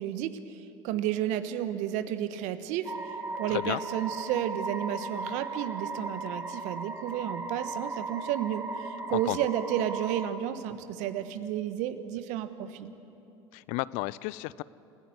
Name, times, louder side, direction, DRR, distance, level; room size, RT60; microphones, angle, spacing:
voice 1, 0.0-2.9 3.4-12.9, right 11 dB, 60° right, 11 dB, 1.3 m, -32 dB
sound 1, 2.8-10.3, right 3 dB, 20° right, 2.2 m, -37 dB
voice 2, 3.5-3.8 9.1-9.4 13.5-14.6, left 20 dB, 60° left, 20 dB, 0.5 m, -32 dB
28.5 x 15.5 x 8.0 m, 2.9 s
hypercardioid pair, 75°, 14 cm